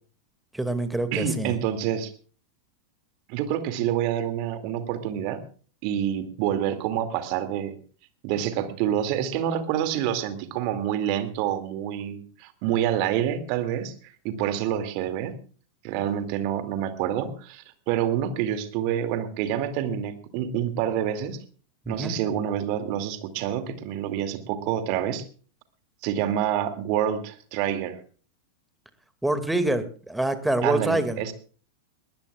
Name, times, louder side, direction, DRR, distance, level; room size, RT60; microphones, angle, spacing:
voice 1, 0.5-1.6 21.9-22.1 29.2-31.3, right 1 dB, 5° right, 10 dB, 2.2 m, -26 dB
voice 2, 1.1-2.1 3.3-5.4 5.8-7.8 8.2-15.4 15.8-21.4 21.9-25.2 26.0-28.0 30.6-31.3, right 10 dB, 45° right, 9 dB, 2.4 m, -27 dB
21.5 x 19.0 x 2.4 m, 0.41 s
figure-of-eight pair, 90°, 0 cm